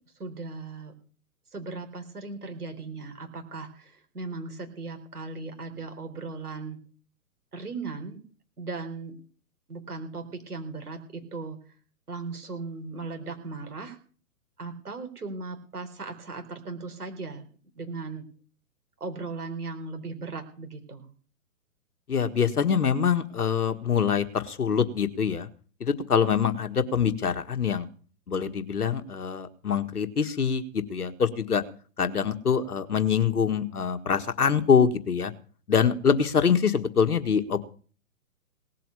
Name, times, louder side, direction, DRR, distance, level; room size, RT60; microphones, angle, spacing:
voice 1, 0.2-0.9 1.5-6.8 7.5-8.2 8.6-9.2 9.7-11.7 12.1-14.0 14.6-17.4 17.7-18.2 19.0-21.1, right 3 dB, 80° right, 5 dB, 4.1 m, -37 dB
voice 2, 22.1-25.5 25.8-27.9 28.3-31.6 32.0-35.3 35.7-37.6, left 7 dB, 75° left, 9 dB, 1.8 m, -24 dB
18.5 x 7.6 x 6.9 m, 0.41 s
figure-of-eight pair, 125°, 45 cm